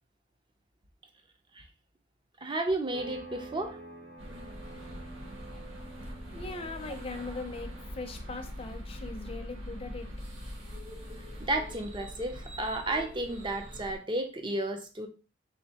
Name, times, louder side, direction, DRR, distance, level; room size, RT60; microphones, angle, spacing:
voice 1, 2.4-3.8 11.4-15.1, right 1 dB, 25° right, 0.5 m, -32 dB
sound 1, 2.9-13.2, right 2 dB, 50° right, 1.1 m, -51 dB
sound 2, 4.2-14.0, equal, 80° right, 1.4 m, -43 dB
voice 2, 6.3-10.1, left 3 dB, 30° left, 0.5 m, -40 dB
3.7 x 3.2 x 2.8 m
head